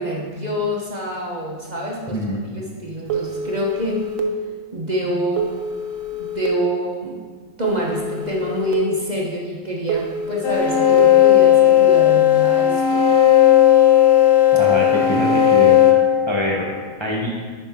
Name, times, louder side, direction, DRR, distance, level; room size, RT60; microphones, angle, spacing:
voice 1, 0.0-2.3 2.5-4.0 4.7-5.5 6.3-7.2 7.6-13.1, equal, 35° right, -3 dB, 1.0 m, -26 dB
voice 2, 2.1-2.4 14.6-15.8 16.3-16.7 17.0-17.3, left 1 dB, 25° left, -4 dB, 0.8 m, -24 dB
Telephone, 3.1-4.2 5.4-6.5 7.6-8.7 9.9-11.0, right 2 dB, 70° right, 1.2 m, -28 dB
sound 1, 10.4-16.9, left 11 dB, 55° left, 0.7 m, -14 dB
9.8 x 5.3 x 3.7 m, 1.5 s
omnidirectional pair, 1.5 m